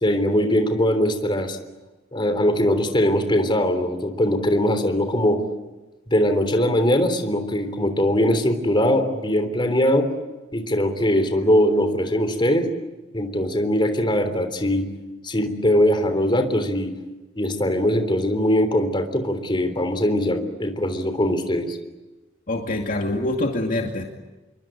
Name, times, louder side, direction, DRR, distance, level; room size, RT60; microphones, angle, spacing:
voice 1, 0.0-1.6 2.1-5.4 6.1-10.1 10.5-12.7 13.1-14.9 15.2-16.9 17.4-21.8, left 1 dB, 25° left, 7 dB, 3.5 m, -21 dB
voice 2, 22.5-24.0, left 1 dB, 45° left, 2 dB, 2.4 m, -25 dB
28.5 x 23.0 x 9.0 m, 1.1 s
head